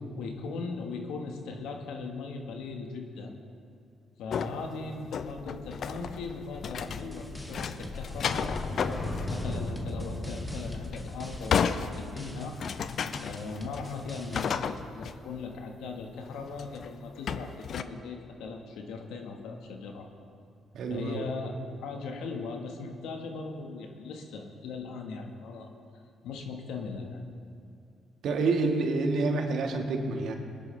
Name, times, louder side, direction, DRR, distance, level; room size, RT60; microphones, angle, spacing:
voice 1, 0.2-3.3 4.2-12.6 13.2-20.1 20.9-25.7 26.2-27.2, left 4 dB, 80° left, 3 dB, 1.4 m, -39 dB
sound 1, 4.3-7.2 7.5-9.4 9.7-9.8 10.7-15.1 16.2-16.9 17.3-17.8, left 7 dB, 60° left, 0.5 m, -33 dB
sound 2, 5.3-15.6 15.9-16.2, left 2 dB, 40° left, 2.8 m, -39 dB
sound 3, 6.9-14.6, left 1 dB, ahead, 1.9 m, -45 dB
voice 2, 20.7-21.3 28.2-30.3, right 3 dB, 70° right, 3 dB, 1.6 m, -28 dB
21.0 x 10.5 x 3.3 m, 2.4 s
supercardioid pair, 55°, 0 cm